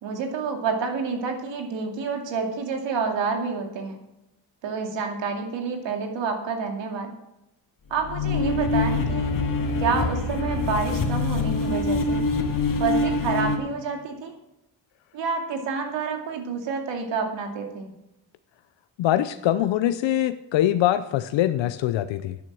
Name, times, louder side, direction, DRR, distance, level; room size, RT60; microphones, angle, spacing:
voice 1, 0.0-4.0 4.6-7.1 7.9-9.4 9.8-12.2 12.8-14.3 15.1-17.9, right 5 dB, 80° right, 3 dB, 2.5 m, -28 dB
sound 1, 8.0-13.6, left 3 dB, 50° left, 2.2 m, -25 dB
voice 2, 19.0-22.4, left 12 dB, 80° left, 11 dB, 0.7 m, -23 dB
11.0 x 9.7 x 6.2 m, 0.89 s
cardioid pair, 75°, 44 cm